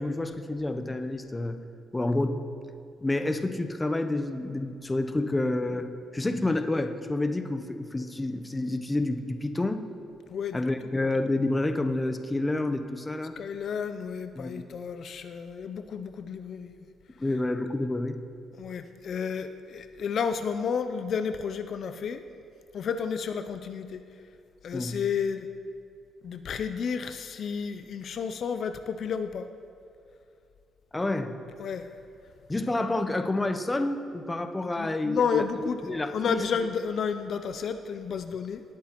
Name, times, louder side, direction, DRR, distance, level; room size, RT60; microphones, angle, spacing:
voice 1, 0.0-1.6 1.9-2.4 3.0-9.8 10.5-13.4 14.4-14.6 17.2-18.2 24.7-25.0 30.9-31.4 32.5-36.4, left 2 dB, 15° left, 7 dB, 0.6 m, -29 dB
voice 2, 10.3-10.6 13.4-16.9 18.5-22.2 22.7-24.0 24.6-25.5 26.2-29.5 31.6-31.9 34.8-35.8 36.1-38.6, left 6 dB, 60° left, 9 dB, 0.4 m, -31 dB
18.0 x 8.3 x 2.9 m, 2.5 s
cardioid pair, 90°, 0 cm